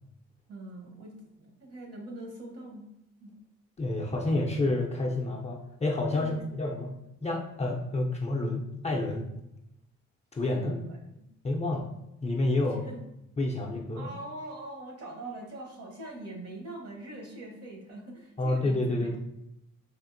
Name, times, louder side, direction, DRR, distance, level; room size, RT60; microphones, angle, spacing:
voice 1, 0.5-2.9 3.2-3.3 6.1-6.4 10.5-11.0 12.8-13.0 13.9-19.2, right 2 dB, 50° right, 0 dB, 1.0 m, -42 dB
voice 2, 3.8-9.3 10.4-10.7 11.4-11.9 12.2-12.8 13.4-14.1 18.4-19.2, left 2 dB, 25° left, -2 dB, 0.4 m, -29 dB
3.5 x 2.4 x 2.5 m, 0.84 s
cardioid pair, 90°, 30 cm